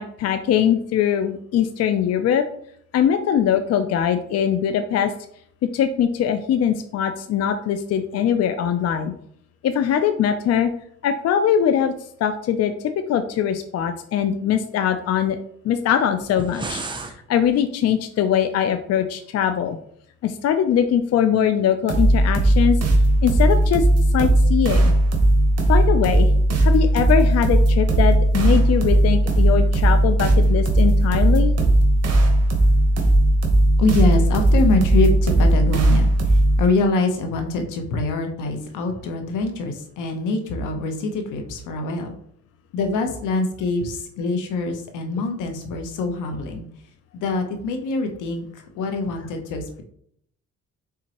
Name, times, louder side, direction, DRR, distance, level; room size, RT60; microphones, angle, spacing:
voice 1, 0.0-2.4 2.9-5.1 5.7-9.1 9.6-10.7 11.0-11.9 12.2-12.7 13.1-15.4 15.6-16.8 17.3-19.8 20.2-22.8 23.2-23.9 24.1-24.9 25.7-26.3 26.6-31.5, left 9 dB, 55° left, 8 dB, 0.4 m, -21 dB
sound 1, 16.2-17.2, right 3 dB, 15° right, 0.5 m, -32 dB
sound 2, 21.9-36.7, right 1 dB, 55° right, 1.0 m, -17 dB
voice 2, 33.8-42.1 42.7-46.7 47.1-49.8, left 3 dB, 85° left, 5 dB, 0.9 m, -24 dB
4.4 x 3.6 x 2.9 m, 0.67 s
cardioid pair, 90°, 30 cm